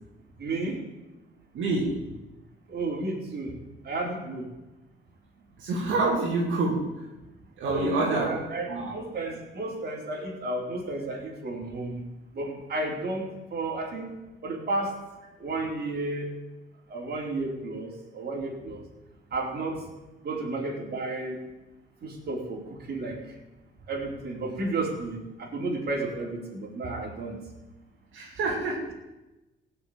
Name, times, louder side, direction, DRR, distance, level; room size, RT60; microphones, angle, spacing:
voice 1, 0.4-0.8 2.7-3.6 3.8-4.5 7.6-12.0 12.3-14.1 14.4-15.0 15.4-16.3 16.9-18.8 19.3-19.8 20.2-21.4 22.0-23.3 23.9-27.4, right 2 dB, 55° right, -1 dB, 4.8 m, -32 dB
voice 2, 1.5-2.0 5.6-7.0 7.6-8.3 8.7-8.9 28.1-28.9, right 2 dB, 75° right, -4 dB, 3.2 m, -27 dB
17.0 x 7.0 x 8.8 m, 1.0 s
cardioid pair, 90°, 20 cm